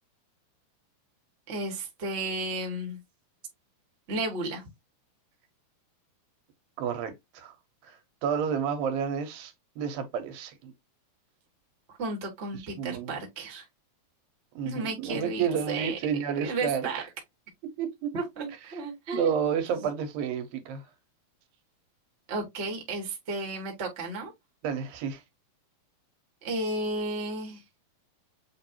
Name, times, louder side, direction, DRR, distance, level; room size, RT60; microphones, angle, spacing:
voice 1, 1.5-3.0 4.1-4.6 11.9-13.6 14.6-16.0 16.4-17.0 18.1-19.6 22.3-24.3 26.4-27.6, right 2 dB, 35° right, 1.0 m, -33 dB
voice 2, 6.8-7.5 7.8-10.7 12.6-13.1 14.6-17.1 17.8-18.1 19.1-20.8 24.6-25.2, right 7 dB, 80° right, 2.7 m, -30 dB
7.4 x 2.6 x 2.8 m
omnidirectional pair, 4.1 m